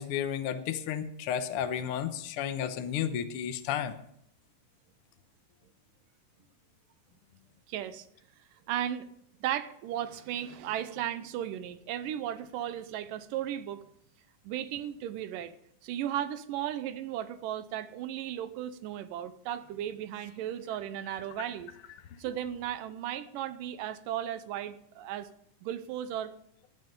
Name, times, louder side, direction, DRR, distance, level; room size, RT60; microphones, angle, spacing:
voice 1, 0.0-3.9, left 9 dB, 80° left, 8 dB, 1.2 m, -32 dB
voice 2, 7.7-8.0 8.7-9.1 9.4-13.8 14.4-15.5 15.8-21.7 22.2-25.3 25.6-26.3, right 11 dB, 85° right, 12 dB, 2.4 m, -35 dB
13.0 x 9.6 x 5.3 m, 0.72 s
omnidirectional pair, 3.9 m